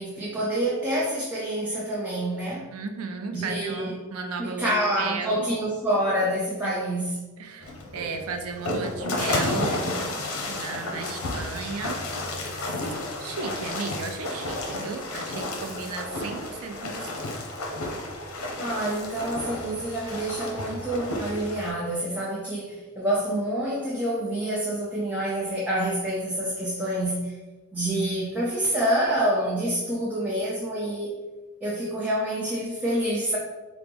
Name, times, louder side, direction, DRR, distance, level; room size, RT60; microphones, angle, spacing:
voice 1, 0.0-2.7 3.3-4.0 4.4-7.2 18.6-27.4 27.7-31.2 31.6-33.4, right 1 dB, 10° right, -6 dB, 0.5 m, -27 dB
voice 2, 2.7-5.4 6.6-6.8 7.4-9.7 10.5-12.0 13.2-17.2, right 4 dB, 85° right, 6 dB, 0.5 m, -34 dB
sound 1, 7.6-21.7, left 2 dB, 90° left, 0.7 m, -32 dB
4.4 x 2.0 x 3.4 m, 1.2 s
head